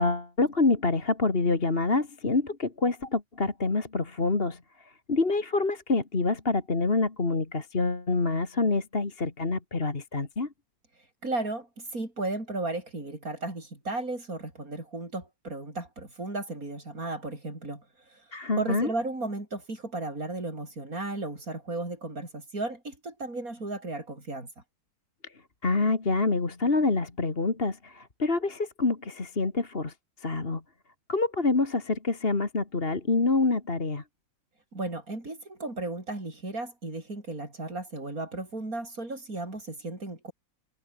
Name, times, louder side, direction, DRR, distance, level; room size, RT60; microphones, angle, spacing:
voice 1, 0.0-4.6 5.1-10.5 18.3-18.9 25.6-29.9 30.2-30.6 31.1-34.0, left 3 dB, 30° left, 2.4 m, -26 dB
voice 2, 11.2-17.8 18.6-24.5 34.7-40.3, right 2 dB, 45° right, 7.1 m, -35 dB
omnidirectional pair, 2.0 m